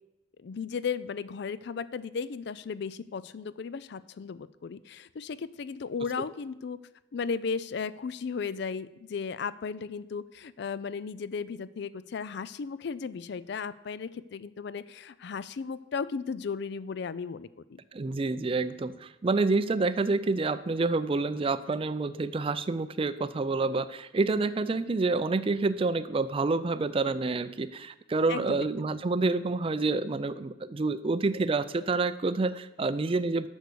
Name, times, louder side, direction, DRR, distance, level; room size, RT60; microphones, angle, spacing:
voice 1, 0.4-6.8 7.1-17.8 28.3-29.0, left 5 dB, 60° left, 17 dB, 0.4 m, -35 dB
voice 2, 17.9-33.5, right 3 dB, 30° right, 14 dB, 0.4 m, -28 dB
8.1 x 6.3 x 6.8 m, 0.94 s
head